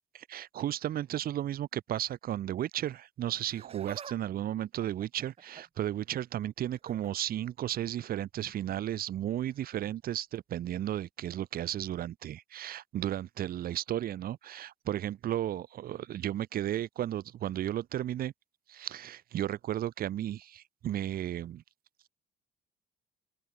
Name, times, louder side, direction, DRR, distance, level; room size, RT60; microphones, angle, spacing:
voice 1, 0.1-18.3 18.7-21.6, right 12 dB, 60° right, 2.6 m, -34 dB
Laughter, 3.3-4.2 4.5-5.8 6.7-7.1 8.4-8.6 9.5-9.6, right 6 dB, 35° right, 4.0 m, -47 dB
cardioid pair, 110°, 17 cm